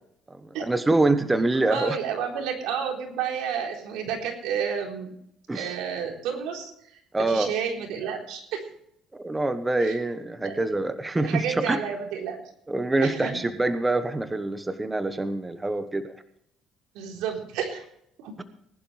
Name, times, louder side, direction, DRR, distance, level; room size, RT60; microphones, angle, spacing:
voice 1, 0.6-2.0 5.5-5.7 7.1-7.5 9.1-11.8 12.7-16.1, right 2 dB, 15° right, 10 dB, 1.1 m, -25 dB
voice 2, 1.7-5.1 5.5-6.7 7.2-8.6 9.8-9.9 10.4-10.6 11.2-12.4 13.0-13.4 16.9-17.8 18.2-18.4, right 7 dB, 85° right, 1 dB, 3.9 m, -30 dB
20.0 x 11.5 x 3.3 m, 0.72 s
cardioid pair, 115°, 0 cm